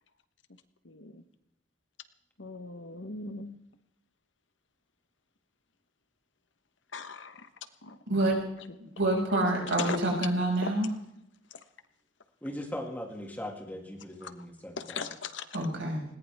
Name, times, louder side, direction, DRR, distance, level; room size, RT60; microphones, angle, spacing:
voice 1, 0.8-1.2 2.4-3.6 6.9-7.5 7.8-8.0 9.0-9.5 9.8-10.0 10.6-10.7 14.8-15.4, left 3 dB, 70° left, 10 dB, 1.2 m, -38 dB
voice 2, 8.9-10.9 15.5-16.1, right 1 dB, 75° right, -1 dB, 6.2 m, -27 dB
voice 3, 12.4-15.1, left 1 dB, 10° left, 2 dB, 2.3 m, -39 dB
20.5 x 19.0 x 3.6 m, 0.80 s
head